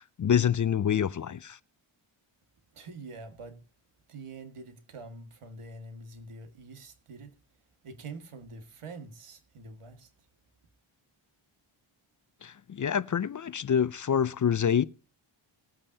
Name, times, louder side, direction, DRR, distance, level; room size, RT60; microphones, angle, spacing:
voice 1, 0.2-1.6 12.4-14.8, left 8 dB, 40° left, 0.5 m, -26 dB
voice 2, 2.7-3.6 4.1-7.4 7.8-10.1, right 3 dB, 90° right, 1.9 m, -45 dB
20.0 x 8.8 x 2.7 m
wide cardioid pair, 100°, 49 cm